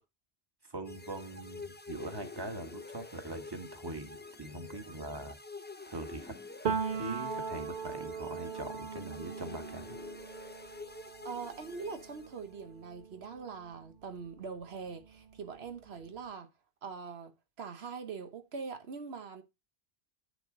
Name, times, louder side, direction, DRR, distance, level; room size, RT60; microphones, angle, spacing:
voice 1, 0.6-5.4 5.9-6.3 7.0-10.0, right 2 dB, 25° right, 1.5 m, -42 dB
sound 1, 0.8-12.7, left 3 dB, 15° left, 0.4 m, -48 dB
Piano, 6.6-14.3 14.6-16.2, right 6 dB, 55° right, 1.1 m, -40 dB
voice 2, 11.2-16.5 16.8-19.4, right 5 dB, 90° right, 1.3 m, -43 dB
8.3 x 6.9 x 3.8 m
omnidirectional pair, 1.0 m